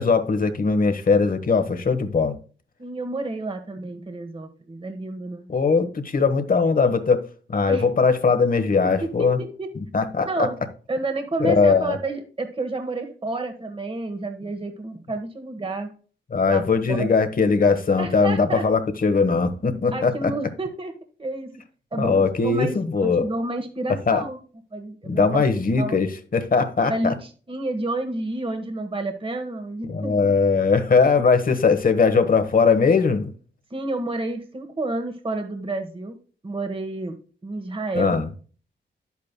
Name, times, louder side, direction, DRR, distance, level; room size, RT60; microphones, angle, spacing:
voice 1, 0.0-2.3 5.5-7.2 7.5-9.4 9.9-10.5 11.4-12.0 16.3-20.3 22.0-23.3 24.1-24.2 25.1-27.1 29.9-33.3 37.9-38.3, left 4 dB, 50° left, 1.2 m, -20 dB
voice 2, 2.8-5.5 7.7-7.8 8.8-8.9 9.2-9.7 10.2-10.6 10.9-15.9 16.5-17.1 18.0-18.6 19.9-20.9 21.2-21.5 21.9-24.4 24.7-25.4 25.8-26.0 26.9-30.3 33.7-36.1 36.4-37.2 37.4-38.2, right 2 dB, 30° right, 1.3 m, -30 dB
10.5 x 8.4 x 2.2 m
cardioid pair, 80°, 19 cm